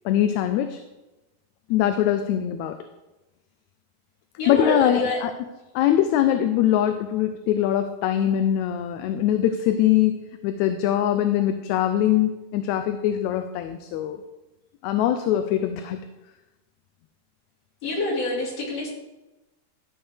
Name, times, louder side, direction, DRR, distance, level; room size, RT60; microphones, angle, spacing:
voice 1, 0.1-0.8 1.7-2.8 4.5-5.3 5.8-10.2 10.4-14.2 14.8-16.1, left 11 dB, 80° left, 8 dB, 1.8 m, -22 dB
voice 2, 4.4-5.3 17.8-18.9, left 2 dB, 60° left, -2 dB, 3.2 m, -26 dB
13.0 x 7.6 x 3.4 m, 1.0 s
omnidirectional pair, 3.4 m